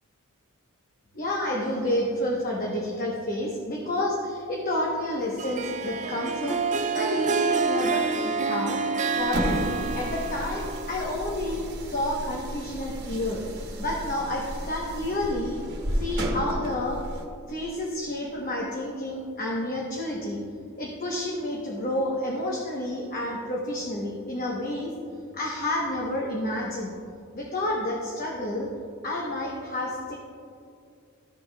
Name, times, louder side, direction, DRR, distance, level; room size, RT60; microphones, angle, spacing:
voice 1, 1.1-8.8 9.1-9.6 9.9-13.4 13.8-15.6 15.9-17.0 17.5-20.4 20.8-24.9 25.3-26.9 27.3-28.7 29.0-30.2, left 1 dB, 40° left, -3 dB, 1.0 m, -30 dB
Harp, 5.4-11.2, right 4 dB, 35° right, 0.3 m, -28 dB
sound 1, 9.2-17.3, equal, 50° right, 1.3 m, -33 dB
14.0 x 7.0 x 2.3 m, 2.4 s
head